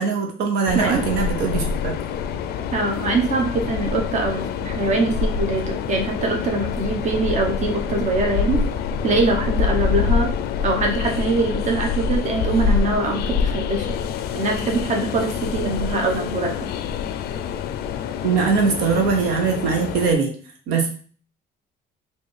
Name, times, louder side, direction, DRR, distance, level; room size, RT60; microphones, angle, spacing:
voice 1, 0.0-1.9 18.2-20.3 20.7-20.9, right 5 dB, 85° right, 3 dB, 0.9 m, -21 dB
Train, 0.7-20.1, left 6 dB, 70° left, 0.4 m, -26 dB
voice 2, 2.7-8.6 9.0-10.3 10.6-13.9 14.3-16.7, right 2 dB, 45° right, 2 dB, 0.9 m, -23 dB
4.1 x 2.6 x 3.2 m, 0.42 s
cardioid pair, 110°, 17 cm